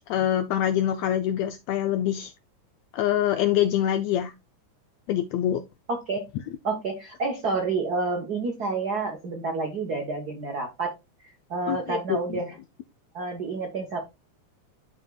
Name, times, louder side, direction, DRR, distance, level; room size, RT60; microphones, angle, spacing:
voice 1, 0.1-2.3 2.9-4.3 5.1-5.6 11.7-12.4, left 11 dB, 80° left, 1.5 m, -25 dB
voice 2, 5.9-6.2 6.6-10.9 11.5-12.5 13.1-14.0, right 3 dB, 80° right, 0.8 m, -29 dB
11.5 x 4.0 x 2.3 m
omnidirectional pair, 3.5 m